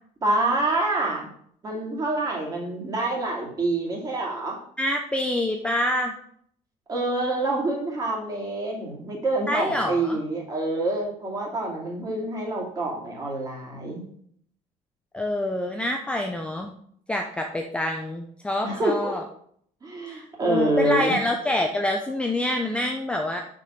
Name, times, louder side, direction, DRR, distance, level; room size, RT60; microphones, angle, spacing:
voice 1, 0.2-1.3 1.6-4.6 6.9-14.0 18.6-19.2 19.8-21.2, right 2 dB, 25° right, -2 dB, 2.6 m, -27 dB
voice 2, 4.8-6.1 9.5-10.2 15.1-16.8 17.1-19.2 20.1-23.4, left 1 dB, 10° left, 3 dB, 0.6 m, -26 dB
6.4 x 5.3 x 5.8 m, 0.64 s
cardioid pair, 150°, 14 cm